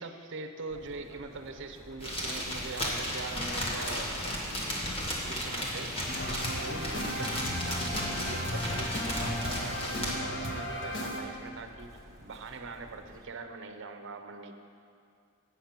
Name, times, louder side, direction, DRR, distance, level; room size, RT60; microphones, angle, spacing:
voice 1, 0.0-4.4 5.2-6.0 6.3-14.5, right 3 dB, 60° right, 6 dB, 0.7 m, -42 dB
Chirp tweet, 0.7-13.2, right 1 dB, 15° right, 1.0 m, -53 dB
sound 1, 2.0-10.2, equal, 25° left, 1.5 m, -34 dB
sound 2, 6.1-11.2, left 1 dB, 60° left, 1.0 m, -35 dB
8.5 x 7.0 x 5.9 m, 2.4 s
head